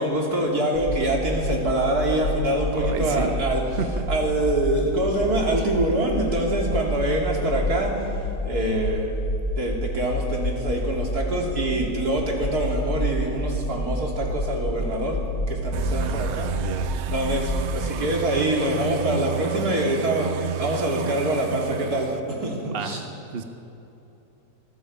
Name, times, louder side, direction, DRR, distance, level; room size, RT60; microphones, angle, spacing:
voice 1, 0.0-3.8 4.1-7.9 8.5-9.1 9.6-15.2 15.5-16.5 17.1-23.0, right 1 dB, 80° right, -1 dB, 3.7 m, -25 dB
sound 1, 0.7-17.9, left 1 dB, 65° left, 3.2 m, -29 dB
voice 2, 2.7-3.3 3.8-4.1 16.0-16.9 22.6-23.4, right 5 dB, 40° right, 6 dB, 1.2 m, -32 dB
sound 2, 15.7-22.2, right 9 dB, 60° right, 0.7 m, -32 dB
26.5 x 21.5 x 5.5 m, 2.9 s
omnidirectional pair, 1.6 m